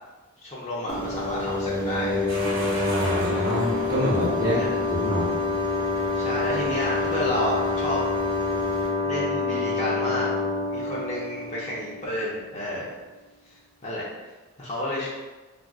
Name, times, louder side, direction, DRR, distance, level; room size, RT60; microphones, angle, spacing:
voice 1, 0.4-2.3 4.4-4.7 6.1-8.0 9.0-10.3 10.7-12.9 13.5-14.0 14.6-15.1, left 1 dB, 30° left, -6 dB, 0.5 m, -30 dB
sound 1, 0.9-12.3, left 3 dB, 65° left, 0.8 m, -27 dB
sound 2, 0.9-8.9, equal, 25° right, 0.5 m, -42 dB
sound 3, 2.3-13.0, right 1 dB, 85° right, 1.0 m, -41 dB
voice 2, 2.8-5.3, equal, 45° right, -7 dB, 0.9 m, -26 dB
2.4 x 2.3 x 3.4 m, 1.2 s
head